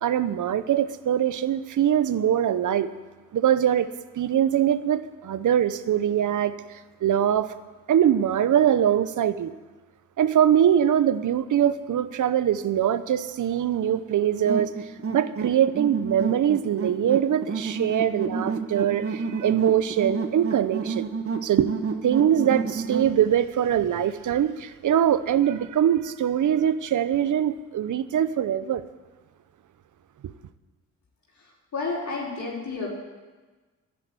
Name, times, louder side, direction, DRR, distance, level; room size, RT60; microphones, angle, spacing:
voice 1, 0.0-2.9 3.3-3.9 4.2-6.5 7.0-7.5 7.9-9.5 10.2-14.7 15.1-21.1 21.4-28.8 30.2-30.3, right 10 dB, 60° right, 14 dB, 1.0 m, -23 dB
sound 1, 14.5-23.1, right 5 dB, 40° right, 1.6 m, -30 dB
voice 2, 31.4-32.9, left 3 dB, 50° left, -5 dB, 4.6 m, -31 dB
11.5 x 11.0 x 9.4 m, 1.3 s
supercardioid pair, 55°, 35 cm